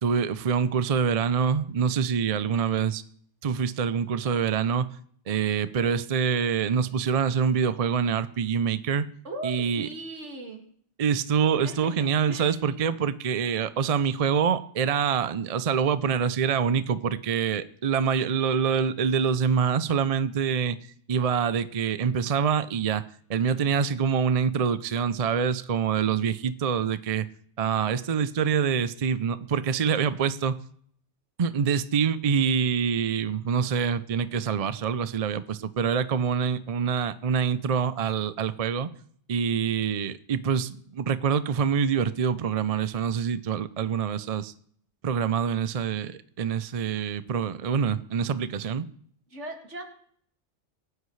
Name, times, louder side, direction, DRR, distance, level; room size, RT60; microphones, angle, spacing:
voice 1, 0.0-3.0 3.4-4.9 5.3-9.1 9.4-9.9 11.0-20.8 21.1-23.0 23.3-27.3 27.6-30.6 31.4-38.9 39.3-44.5 45.0-48.9, right 7 dB, 45° right, 13 dB, 0.5 m, -25 dB
voice 2, 9.2-10.6 11.6-12.5 49.3-49.8, right 2 dB, 75° right, 2 dB, 2.6 m, -38 dB
26.0 x 9.5 x 3.2 m, 0.62 s
omnidirectional pair, 1.2 m